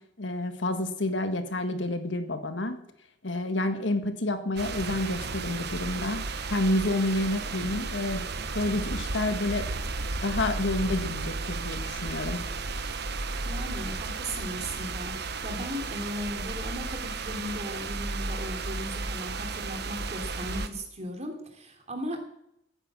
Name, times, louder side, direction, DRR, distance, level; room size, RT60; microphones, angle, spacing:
voice 1, 0.2-2.8 3.2-6.2 6.5-8.2 8.6-9.7 10.2-12.4, left 1 dB, 70° left, 8 dB, 1.8 m, -29 dB
sound 1, 4.6-20.7, right 3 dB, 60° right, 1.2 m, -34 dB
voice 2, 13.4-22.2, equal, 35° right, 4 dB, 3.1 m, -37 dB
16.0 x 10.0 x 7.6 m, 0.77 s
head